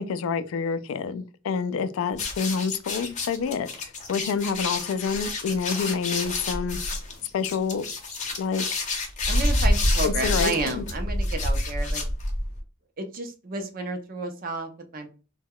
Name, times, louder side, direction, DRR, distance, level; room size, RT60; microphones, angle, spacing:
voice 1, 0.0-6.8 7.3-7.9 8.4-8.6 10.0-10.8, left 5 dB, 85° left, 0.3 m, -28 dB
sound 1, 2.1-12.6, left 1 dB, 35° left, 0.6 m, -27 dB
voice 2, 9.3-12.0 13.0-15.1, right 2 dB, 45° right, 0.5 m, -31 dB
2.2 x 2.1 x 3.5 m
head